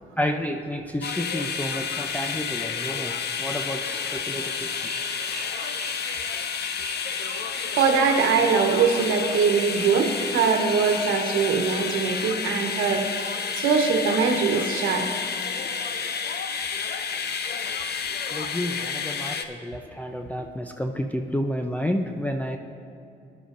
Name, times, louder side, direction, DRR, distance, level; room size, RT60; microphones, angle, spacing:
voice 1, 0.2-4.9 18.3-22.6, equal, 10° left, 4 dB, 0.6 m, -30 dB
sound 1, 1.0-19.4, left 6 dB, 55° left, 0.8 m, -30 dB
sound 2, 4.8-6.3 6.8-8.4 8.8-10.4, right 6 dB, 40° right, 0.9 m, -41 dB
voice 2, 7.8-15.1, right 5 dB, 85° right, 3 dB, 1.2 m, -22 dB
18.5 x 11.0 x 2.6 m, 2.7 s
cardioid pair, 90°, 20 cm